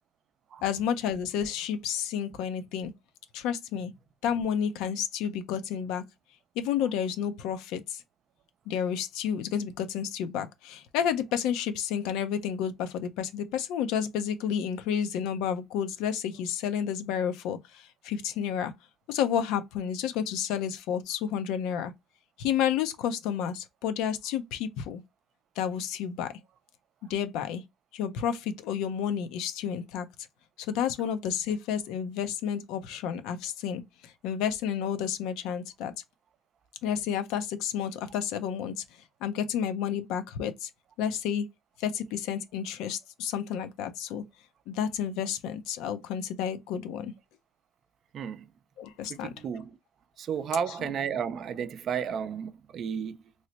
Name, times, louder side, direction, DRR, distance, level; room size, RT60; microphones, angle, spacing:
voice 1, 0.6-2.9 3.3-3.9 4.2-6.0 6.6-8.0 8.7-18.7 19.1-21.9 22.4-25.0 25.6-26.3 27.1-27.6 27.9-30.1 30.6-35.9 36.8-38.8 39.2-40.7 41.0-41.5 41.8-44.2 44.7-47.1 48.8-49.3, left 8 dB, 80° left, 0.5 m, -31 dB
voice 2, 48.1-48.4 49.1-49.8 50.2-53.2, right 7 dB, 50° right, 0.4 m, -33 dB
3.1 x 2.0 x 3.9 m
cardioid pair, 105°, 0 cm